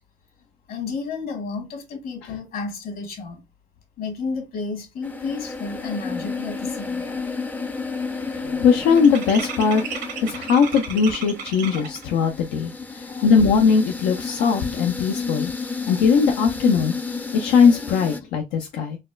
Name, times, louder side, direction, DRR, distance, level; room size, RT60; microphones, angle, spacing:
voice 1, 0.7-3.4 4.0-7.2 11.8-11.9 13.0-13.3 14.4-14.6, left 4 dB, 65° left, 1.5 m, -32 dB
sound 1, 5.0-18.2, left 4 dB, 10° left, 0.4 m, -31 dB
sound 2, 6.8-7.2 7.5-12.1, right 7 dB, 80° right, 1.1 m, -35 dB
voice 2, 8.3-9.8 10.2-15.5 15.9-16.9 17.3-19.0, left 6 dB, 85° left, 0.5 m, -19 dB
4.1 x 2.2 x 2.3 m
cardioid pair, 110°, 17 cm